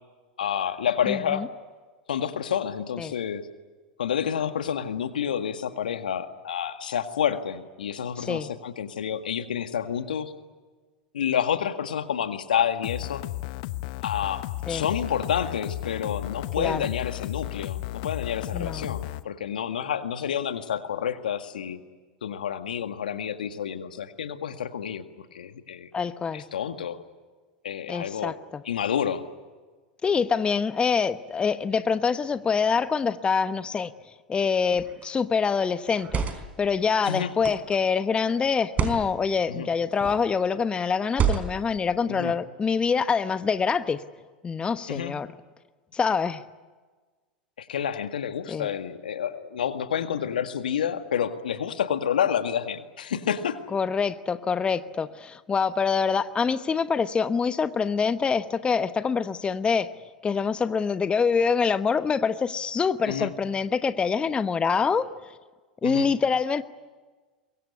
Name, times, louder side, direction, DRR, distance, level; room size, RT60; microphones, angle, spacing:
voice 1, 0.4-1.5 2.1-3.5 4.0-10.3 11.1-13.2 14.0-21.8 22.2-25.9 26.3-27.0 27.6-28.3 28.6-29.2 37.1-37.3 39.5-39.7 42.1-42.3 44.9-45.1 47.6-53.6 63.0-63.3 65.8-66.1, left 8 dB, 75° left, 9 dB, 1.9 m, -29 dB
voice 2, 1.1-1.5 3.0-3.1 8.2-8.5 14.7-14.8 16.6-16.9 18.5-18.9 25.9-26.4 27.9-28.6 30.0-33.9 34.3-36.2 36.6-44.0 44.4-45.3 45.9-46.4 48.5-48.7 53.7-59.9 60.2-65.1 65.8-66.6, left 5 dB, 20° left, 12 dB, 1.1 m, -25 dB
sound 1, 12.8-19.2, left 18 dB, 60° left, 1.0 m, -34 dB
sound 2, 34.7-35.0 35.9-36.6 37.4-37.8 38.6-39.0 39.9-40.3 41.1-41.7, right 7 dB, 30° right, 4.2 m, -28 dB
24.0 x 23.0 x 9.8 m, 1.3 s
hypercardioid pair, 85°, 5 cm